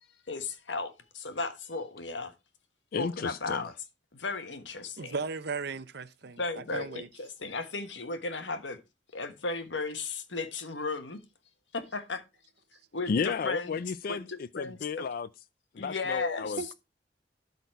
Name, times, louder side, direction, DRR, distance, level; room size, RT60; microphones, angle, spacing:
voice 1, 0.3-2.3 3.0-3.7 4.1-5.1 6.4-8.8 9.1-11.2 11.7-12.2 12.9-13.8 14.1-14.8 15.8-16.7, left 3 dB, 90° left, 1.4 m, -35 dB
voice 2, 2.9-3.7 13.1-15.3 15.7-16.7, left 5 dB, 55° left, 0.4 m, -33 dB
voice 3, 5.0-7.1 16.6-16.7, right 4 dB, 65° right, 0.7 m, -36 dB
12.0 x 4.1 x 4.5 m
head